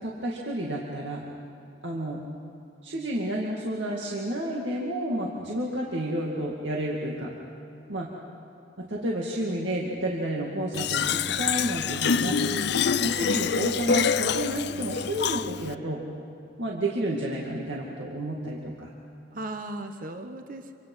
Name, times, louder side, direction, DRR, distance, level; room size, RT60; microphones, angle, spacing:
voice 1, 0.0-1.2 1.8-2.2 2.8-7.3 7.9-8.1 8.8-16.0 16.6-18.9, right 1 dB, 70° right, -3 dB, 2.4 m, -30 dB
Fill (with liquid), 10.7-15.7, left 7 dB, 60° left, 0.5 m, -26 dB
voice 2, 12.1-12.8 19.3-20.7, right 2 dB, 45° right, 6 dB, 1.2 m, -37 dB
27.5 x 25.5 x 5.7 m, 2.7 s
head